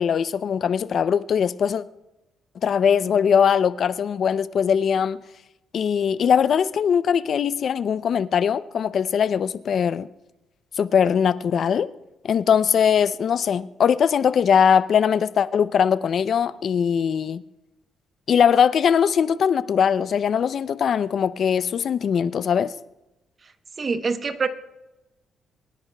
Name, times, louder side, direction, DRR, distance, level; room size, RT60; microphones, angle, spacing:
voice 1, 0.0-1.8 2.6-5.2 5.7-10.1 10.8-11.9 12.2-17.4 18.3-22.7, left 7 dB, 55° left, 0.5 m, -21 dB
voice 2, 23.8-24.5, right 4 dB, 40° right, 0.9 m, -25 dB
26.0 x 10.5 x 2.3 m
cardioid pair, 90°, 0 cm